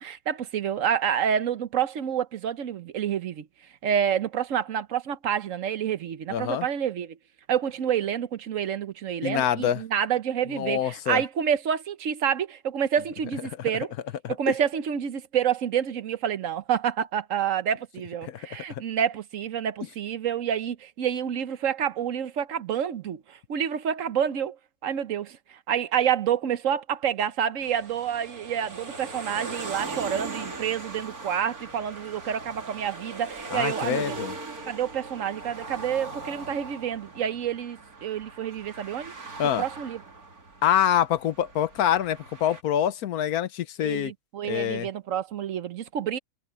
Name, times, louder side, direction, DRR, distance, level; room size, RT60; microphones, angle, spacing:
voice 1, 0.0-3.5 3.8-7.2 7.5-13.9 14.3-24.6 24.8-34.2 34.7-39.1 39.6-40.0 43.8-46.2, right 8 dB, 65° right, 1.2 m, -28 dB
voice 2, 6.3-6.7 9.2-9.8 10.5-11.2 14.2-14.5 18.2-18.4 18.7-18.8 33.5-34.4 39.4-39.6 40.6-44.1 44.5-44.9, left 10 dB, 85° left, 1.3 m, -25 dB
sound 1, 27.6-42.6, right 3 dB, 90° right, 3.4 m, -39 dB
omnidirectional pair, 1.5 m